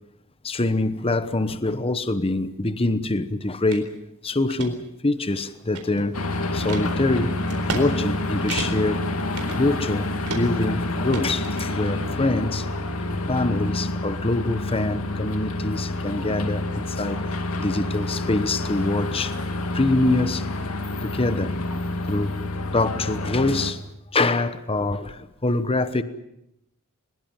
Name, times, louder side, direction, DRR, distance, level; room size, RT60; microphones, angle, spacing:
voice 1, 0.4-3.9 4.2-6.2 6.5-7.4 7.7-9.1 9.6-12.7 13.0-17.2 17.6-19.4 19.7-20.5 21.0-21.6 22.0-22.3 22.7-23.8 24.1-26.0, left 2 dB, 25° left, 1.0 m, -24 dB
sound 1, 3.7-3.8 4.3-4.7 5.2-6.2 6.7-6.9 7.5-7.9 8.1-8.2 8.5-9.0 9.4-9.9 10.3-10.7 11.1-11.9, right 4 dB, 75° right, 4.1 m, -33 dB
sound 2, 6.1-23.7, left 2 dB, 75° left, 2.4 m, -28 dB
21.5 x 21.0 x 7.4 m
head